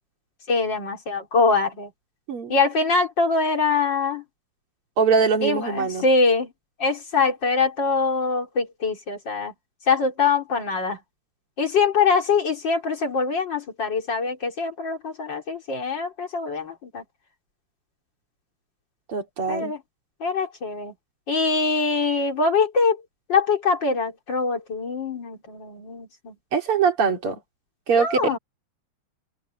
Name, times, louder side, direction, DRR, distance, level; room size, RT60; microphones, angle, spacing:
voice 1, 0.5-1.9 2.5-4.2 5.4-6.5 6.8-9.5 9.9-11.0 11.6-17.0 19.5-19.8 20.2-20.9 21.3-23.0 23.3-26.3 27.9-28.4, left 4 dB, 55° left, 3.9 m, -23 dB
voice 2, 5.0-6.1 19.1-19.7 26.5-27.4 27.9-28.3, right 5 dB, 85° right, 3.7 m, -22 dB
omnidirectional pair, 2.4 m